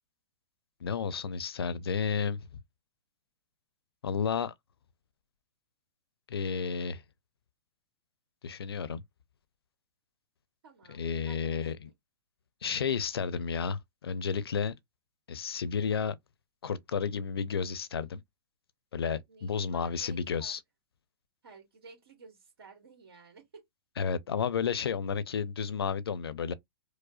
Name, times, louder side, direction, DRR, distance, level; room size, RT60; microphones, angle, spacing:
voice 1, 0.8-2.5 4.0-4.5 6.3-7.0 8.4-9.0 10.9-11.9 12.6-14.7 15.3-16.2 16.6-18.2 18.9-20.6 24.0-26.5, left 6 dB, 80° left, 0.6 m, -32 dB
voice 2, 10.6-11.9 19.3-20.6 21.4-23.6, right 4 dB, 70° right, 1.6 m, -55 dB
4.9 x 2.1 x 2.4 m
hypercardioid pair, 125°, 13 cm